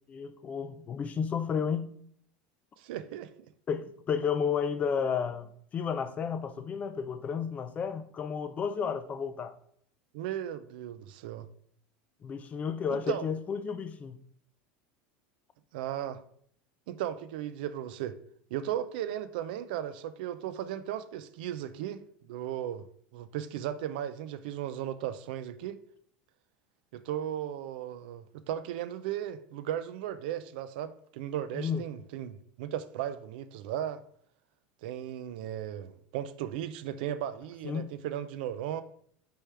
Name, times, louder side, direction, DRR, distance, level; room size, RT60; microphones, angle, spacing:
voice 1, 0.1-1.9 3.7-5.5 5.7-9.6 12.2-14.2 31.5-31.8 37.6-37.9, left 6 dB, 30° left, 0.4 m, -32 dB
voice 2, 2.8-3.3 10.1-11.5 12.9-13.3 15.7-16.2 16.9-18.2 18.5-22.8 23.1-25.8 26.9-34.0 34.8-38.8, right 11 dB, 75° right, 0.4 m, -36 dB
4.3 x 3.4 x 3.3 m
supercardioid pair, 120°, 5 cm